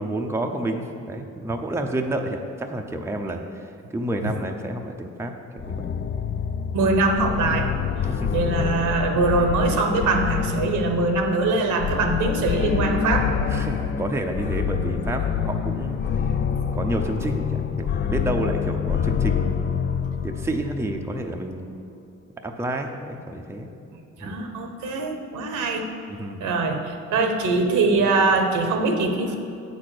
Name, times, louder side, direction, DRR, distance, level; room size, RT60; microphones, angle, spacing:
voice 1, 0.0-5.9 8.1-8.3 13.5-16.3 16.7-19.8 20.2-21.7 22.4-23.7 24.2-24.4 26.1-26.4, right 1 dB, 10° right, 3 dB, 0.6 m, -29 dB
sound 1, 5.6-21.3, left 7 dB, 35° left, 0.4 m, -26 dB
voice 2, 6.7-7.7 8.3-13.4 24.2-25.9 26.4-29.4, right 3 dB, 80° right, 4 dB, 1.1 m, -22 dB
8.4 x 4.2 x 6.5 m, 2.6 s
cardioid pair, 90°, 30 cm